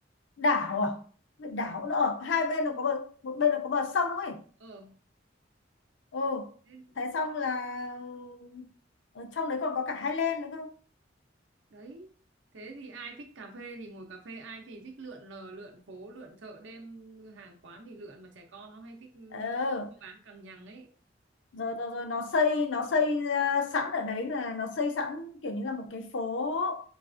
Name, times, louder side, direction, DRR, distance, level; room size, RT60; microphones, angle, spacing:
voice 1, 0.4-1.0 1.4-4.4 6.1-6.5 7.0-8.6 9.2-10.7 19.3-19.9 21.5-26.8, left 4 dB, 80° left, 0.6 m, -30 dB
voice 2, 4.6-4.9 6.7-7.1 11.7-12.1 12.5-19.6 20.0-20.9, right 3 dB, 85° right, 0.7 m, -46 dB
4.0 x 2.4 x 2.5 m
head